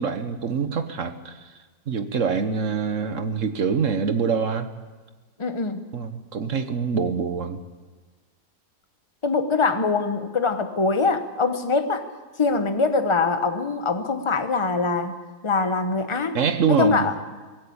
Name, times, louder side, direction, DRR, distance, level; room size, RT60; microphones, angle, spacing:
voice 1, 0.0-1.5 1.9-4.7 5.9-7.6 16.3-17.1, right 6 dB, 55° right, 10 dB, 1.4 m, -25 dB
voice 2, 5.4-5.9 9.2-12.1 12.4-15.2 15.4-16.4 16.7-17.1, left 4 dB, 20° left, 8 dB, 1.0 m, -23 dB
19.0 x 16.0 x 8.6 m, 1.3 s
omnidirectional pair, 1.8 m